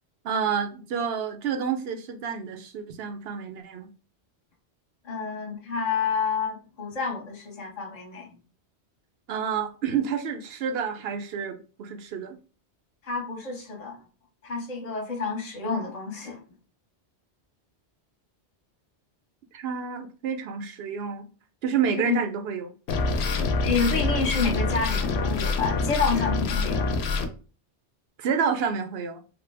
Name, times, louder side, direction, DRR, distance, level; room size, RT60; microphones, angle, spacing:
voice 1, 0.2-3.9 9.3-12.4 19.5-21.2 21.6-22.7 28.2-29.2, right 7 dB, 70° right, 0.8 m, -29 dB
voice 2, 5.0-8.3 13.0-14.0 14.4-16.4 22.1-22.2 23.6-26.9, left 5 dB, 40° left, 0.9 m, -29 dB
sound 1, 22.9-27.3, left 3 dB, 70° left, 0.8 m, -26 dB
3.2 x 2.1 x 3.3 m
omnidirectional pair, 1.1 m